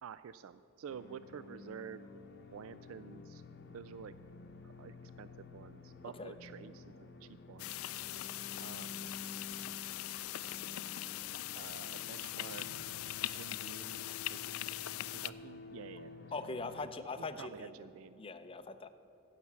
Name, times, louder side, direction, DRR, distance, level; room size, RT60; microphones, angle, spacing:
voice 1, 0.0-2.0 2.5-3.4 3.7-4.1 4.6-7.7 8.6-9.1 11.5-12.9 13.3-14.7 15.1-16.3 16.7-18.2, right 7 dB, 75° right, 14 dB, 0.3 m, -50 dB
sound 1, 0.9-16.8, left 3 dB, 50° left, 0.8 m, -52 dB
sound 2, 7.6-15.3, left 15 dB, 85° left, 0.4 m, -41 dB
voice 2, 16.3-17.7 18.2-18.9, left 3 dB, 25° left, 10 dB, 0.5 m, -41 dB
15.5 x 5.7 x 7.4 m, 2.9 s
head